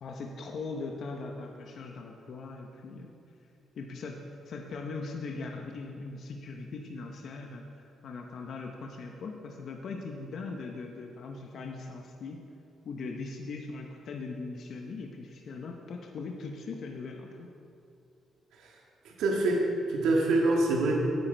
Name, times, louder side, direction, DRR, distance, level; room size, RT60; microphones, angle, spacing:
voice 1, 0.0-3.1 3.8-12.4 12.8-17.5, left 3 dB, 60° left, 2 dB, 0.8 m, -40 dB
voice 2, 19.0-20.9, right 2 dB, 85° right, -1 dB, 1.7 m, -26 dB
9.5 x 8.9 x 4.5 m, 2.6 s
cardioid pair, 90°, 0 cm